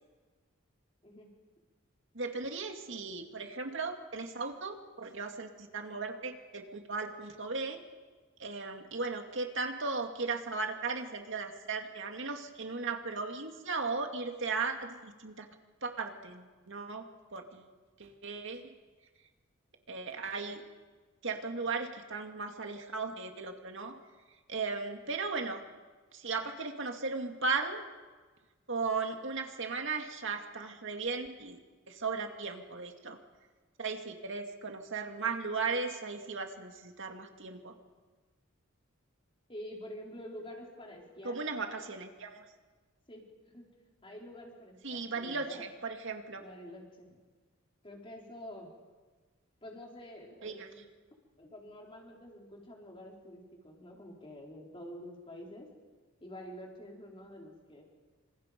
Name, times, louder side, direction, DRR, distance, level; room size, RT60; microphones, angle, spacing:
voice 1, 2.1-7.8 8.4-15.5 15.8-17.7 18.0-18.7 19.9-20.6 21.2-23.9 24.5-25.6 26.1-27.8 28.7-31.6 31.9-33.2 33.8-37.7 41.2-42.4 44.8-46.4 50.4-50.7, right 4 dB, 60° right, 4 dB, 2.3 m, -36 dB
voice 2, 39.5-41.8 43.1-43.7 44.0-45.6 46.4-47.2 47.8-48.7 49.6-50.8 51.4-55.7 56.2-57.8, equal, 25° left, -1 dB, 4.5 m, -48 dB
27.5 x 26.0 x 5.3 m, 1.4 s
head